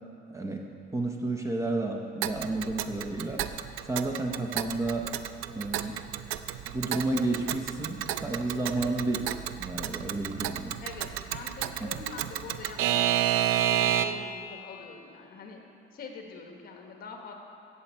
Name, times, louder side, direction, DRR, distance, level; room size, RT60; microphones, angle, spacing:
voice 1, 0.3-0.7 0.9-3.4 3.8-5.1 5.5-6.0 6.6-9.2 9.6-10.8 11.8-11.9, right 2 dB, 15° right, 2 dB, 0.6 m, -31 dB
Alarm / Clock, 2.2-14.4, right 11 dB, 85° right, 0.4 m, -31 dB
voice 2, 10.8-15.6 15.9-17.3, left 5 dB, 45° left, 2 dB, 1.3 m, -44 dB
16.0 x 7.1 x 4.4 m, 2.7 s
cardioid pair, 160°, 21 cm